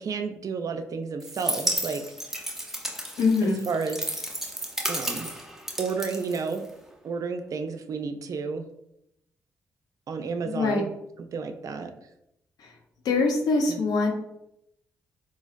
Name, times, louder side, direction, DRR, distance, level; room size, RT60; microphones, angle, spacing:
voice 1, 0.0-2.0 3.4-4.0 4.9-5.3 5.8-6.6 7.0-8.6 10.1-10.9 11.2-11.9 13.7-13.8, right 5 dB, 55° right, 7 dB, 0.4 m, -31 dB
sound 1, 1.2-6.9, right 1 dB, 5° right, 0.6 m, -33 dB
voice 2, 3.2-3.6 10.4-10.8 13.0-14.1, left 3 dB, 75° left, 2 dB, 0.6 m, -23 dB
3.0 x 2.6 x 2.4 m, 0.80 s
supercardioid pair, 55°, 7 cm